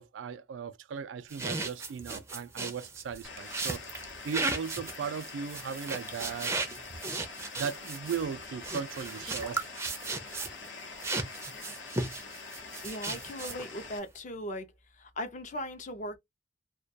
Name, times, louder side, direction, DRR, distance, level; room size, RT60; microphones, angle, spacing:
voice 1, 0.0-3.8 4.2-6.5 7.6-9.7, right 6 dB, 85° right, 0.3 m, -37 dB
sound 1, 1.3-10.7 11.0-13.8, right 3 dB, 15° right, 0.4 m, -36 dB
sound 2, 3.2-14.0, left 4 dB, 90° left, 0.8 m, -45 dB
voice 2, 12.8-14.7 14.9-16.2, equal, 40° left, 0.5 m, -38 dB
2.2 x 2.2 x 2.6 m
head